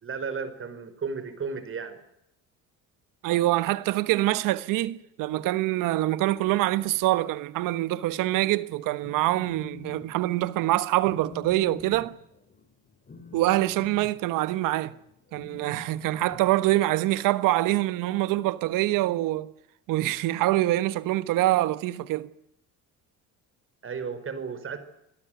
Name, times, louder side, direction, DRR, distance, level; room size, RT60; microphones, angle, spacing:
voice 1, 0.0-2.0 23.8-24.8, right 5 dB, 40° right, 5.0 m, -34 dB
voice 2, 3.2-12.1 13.3-15.0 15.3-19.5 19.9-22.3, right 16 dB, 80° right, 1.3 m, -25 dB
Telephone, 9.0-10.1 10.4-10.7 11.0-17.1, left 4 dB, 25° left, 5.2 m, -46 dB
27.0 x 18.0 x 9.1 m
cardioid pair, 95°, 32 cm